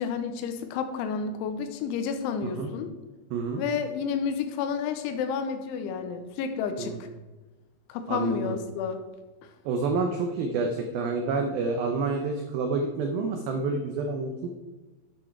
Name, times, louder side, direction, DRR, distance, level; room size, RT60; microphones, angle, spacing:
voice 1, 0.0-2.9 3.6-7.0 7.9-9.0, left 6 dB, 85° left, 8 dB, 3.3 m, -30 dB
voice 2, 3.3-3.6 6.8-7.0 8.1-8.5 9.7-14.5, right 4 dB, 85° right, 4 dB, 2.1 m, -28 dB
11.0 x 7.6 x 4.7 m, 1.2 s
omnidirectional pair, 5.4 m